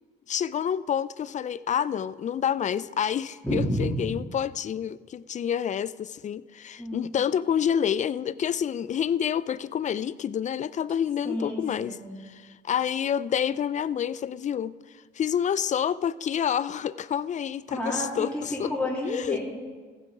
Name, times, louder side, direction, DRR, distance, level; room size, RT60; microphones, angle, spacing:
voice 1, 0.3-12.0 12.2-14.7 15.2-18.7 19.0-19.4, left 8 dB, 40° left, 18 dB, 0.4 m, -28 dB
voice 2, 3.4-4.0 6.8-7.1 11.2-12.2 17.7-19.4, equal, 5° left, -6 dB, 3.0 m, -30 dB
14.5 x 7.7 x 4.9 m, 1.5 s
cardioid pair, 90°, 20 cm